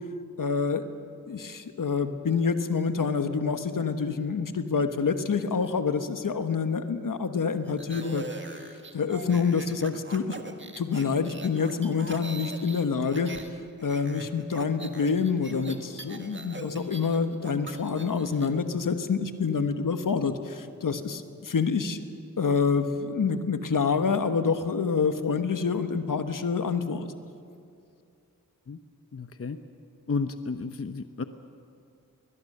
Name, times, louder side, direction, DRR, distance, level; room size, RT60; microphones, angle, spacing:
voice 1, 0.4-0.8 1.3-10.4 10.8-13.3 13.8-22.0 22.4-27.1, left 5 dB, 70° left, 8 dB, 1.3 m, -27 dB
sound 1, 7.6-13.5 13.8-18.5, right 3 dB, 35° right, 1.7 m, -42 dB
voice 2, 29.1-29.6 30.1-31.2, left 4 dB, 40° left, 9 dB, 0.9 m, -32 dB
21.5 x 21.0 x 6.7 m, 2.5 s
cardioid pair, 65°, 34 cm